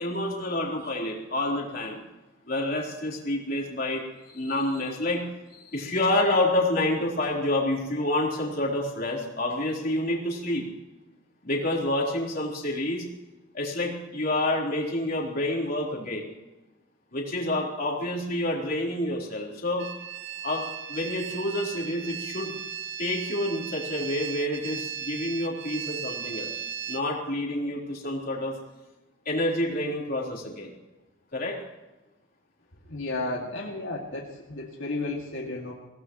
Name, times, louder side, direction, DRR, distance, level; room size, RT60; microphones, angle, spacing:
voice 1, 0.0-2.0 2.5-5.2 5.5-10.6 11.4-13.0 13.5-16.3 17.1-19.9 20.4-22.6 23.0-26.5 26.9-28.5 29.3-30.7 31.3-31.6, left 1 dB, 50° left, -3 dB, 3.9 m, -28 dB
sound 1, 19.8-27.0, right 7 dB, 60° right, 0.8 m, -36 dB
voice 2, 32.9-35.7, left 2 dB, 80° left, -2 dB, 2.4 m, -33 dB
25.0 x 17.5 x 3.1 m, 1.1 s
head